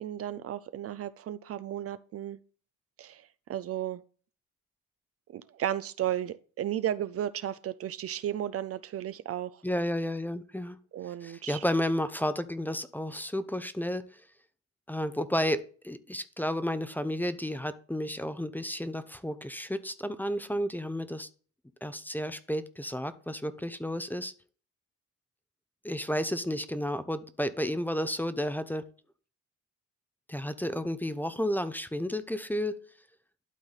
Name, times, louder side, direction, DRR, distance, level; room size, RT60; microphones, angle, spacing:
voice 1, 0.0-2.4 3.0-4.0 5.3-9.6 10.9-11.6, right 11 dB, 50° right, 0.4 m, -34 dB
voice 2, 9.6-10.8 11.2-14.0 14.9-21.3 21.8-24.3 25.8-28.9 30.3-32.8, equal, 5° left, 0.6 m, -32 dB
11.5 x 3.9 x 4.1 m
cardioid pair, 90°, 30 cm